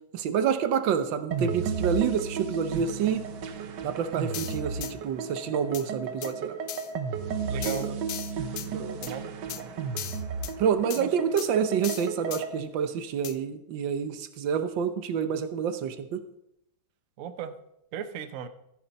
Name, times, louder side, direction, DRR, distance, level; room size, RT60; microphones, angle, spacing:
voice 1, 0.1-3.2 3.8-6.5 7.7-7.9 8.7-9.0 10.6-16.2, right 7 dB, 90° right, 10 dB, 1.6 m, -28 dB
sound 1, 1.3-12.6, right 5 dB, 70° right, 1.5 m, -34 dB
sound 2, 4.3-4.9 5.7-5.8 6.2-6.3 6.7-6.9 7.6-8.7 9.0-9.1 9.5-9.6 10.0-10.5 10.9-11.0 11.4-11.5 11.8-12.4 13.2-13.3, left 13 dB, 85° left, 0.7 m, -37 dB
voice 2, 7.4-7.9 9.0-9.7 11.0-11.1 17.2-17.5 17.9-18.5, right 8 dB, 55° right, 10 dB, 1.0 m, -37 dB
14.0 x 9.8 x 4.1 m, 0.79 s
omnidirectional pair, 2.0 m